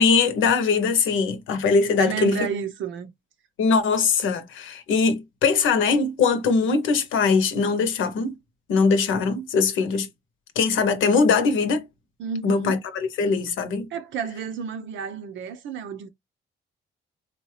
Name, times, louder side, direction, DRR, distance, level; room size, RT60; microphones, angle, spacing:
voice 1, 0.0-2.4 3.6-8.3 8.7-10.1 10.6-11.9 12.4-13.9, left 5 dB, 80° left, 0.8 m, -21 dB
voice 2, 2.0-3.1 12.2-12.8 13.9-16.1, right 7 dB, 75° right, 0.7 m, -31 dB
4.0 x 2.3 x 3.2 m
cardioid pair, 90°, 20 cm